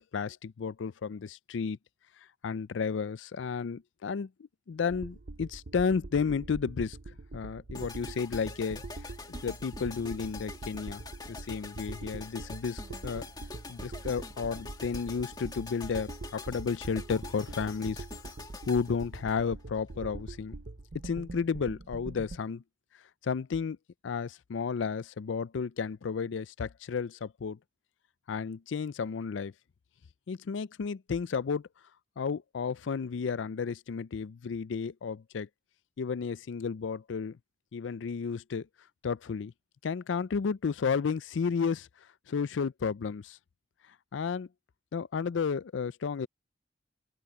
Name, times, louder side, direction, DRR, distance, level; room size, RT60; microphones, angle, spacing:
voice 1, 0.0-1.8 2.4-4.3 4.7-7.0 7.3-11.0 11.3-13.3 13.7-18.1 18.7-20.6 21.0-22.6 23.2-23.8 24.0-27.6 28.3-29.5 30.3-31.7 32.2-35.5 36.0-37.4 37.7-38.7 39.0-39.5 39.8-41.9 42.3-43.4 44.1-44.5 44.9-46.3, left 5 dB, 90° left, 0.4 m, -32 dB
sound 1, 4.9-22.4, right 2 dB, 55° right, 0.7 m, -44 dB
sound 2, 7.7-19.9, left 3 dB, 20° left, 2.2 m, -46 dB
open air
head